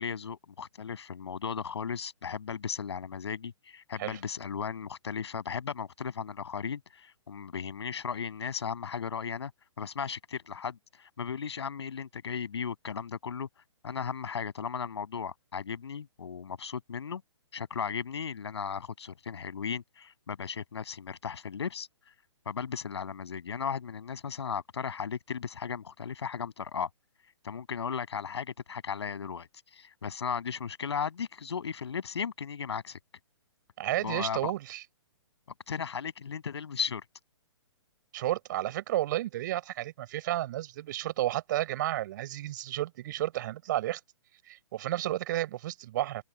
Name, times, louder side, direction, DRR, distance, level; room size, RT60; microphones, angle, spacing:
voice 1, 0.0-9.5 9.8-13.5 13.8-17.2 17.5-21.9 22.5-26.9 27.4-29.5 29.7-33.0 34.0-34.5 35.7-37.0, left 6 dB, 60° left, 7.3 m, -36 dB
voice 2, 33.8-34.8 38.1-44.0 44.5-46.2, right 14 dB, 40° right, 5.2 m, -32 dB
figure-of-eight pair, 125°, 16 cm